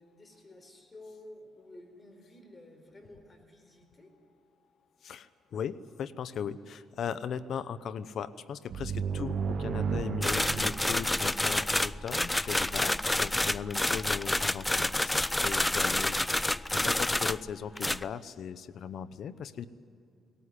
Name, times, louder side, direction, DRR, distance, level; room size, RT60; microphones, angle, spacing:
voice 1, 0.0-4.1, left 1 dB, 25° left, 6 dB, 4.4 m, -52 dB
voice 2, 5.0-19.7, left 7 dB, 65° left, 16 dB, 0.8 m, -38 dB
sound 1, 8.7-12.3, right 6 dB, 60° right, 0.7 m, -34 dB
sound 2, 10.2-17.5 17.8-18.0, left 1 dB, 10° left, 0.4 m, -28 dB
18.5 x 18.5 x 9.9 m, 2.5 s
cardioid pair, 90°, 0 cm